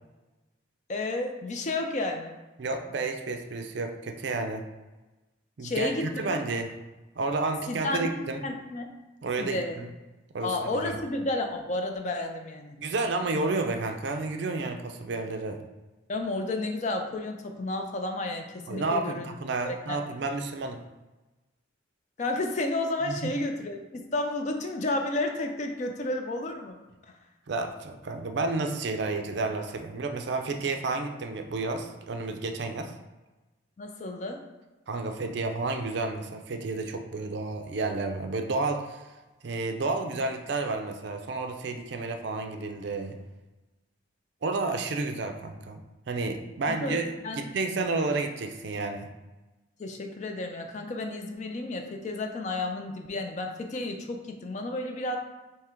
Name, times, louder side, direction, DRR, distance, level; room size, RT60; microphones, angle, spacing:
voice 1, 0.9-2.4 5.6-6.4 7.7-8.1 8.4-8.9 9.4-9.8 10.4-12.8 16.1-19.3 19.6-20.0 22.2-23.8 24.1-26.8 27.1-27.2 33.8-34.4 46.7-47.5 49.8-55.2, left 2 dB, 35° left, 4 dB, 0.4 m, -31 dB
voice 2, 2.6-4.6 5.6-6.7 7.2-8.4 9.2-9.9 10.3-11.0 12.8-15.6 18.7-20.8 23.0-23.3 27.5-32.9 34.9-39.0 39.4-43.2 44.4-45.8 46.1-49.1, right 3 dB, 60° right, 5 dB, 0.4 m, -31 dB
3.6 x 2.8 x 4.4 m, 1.1 s
head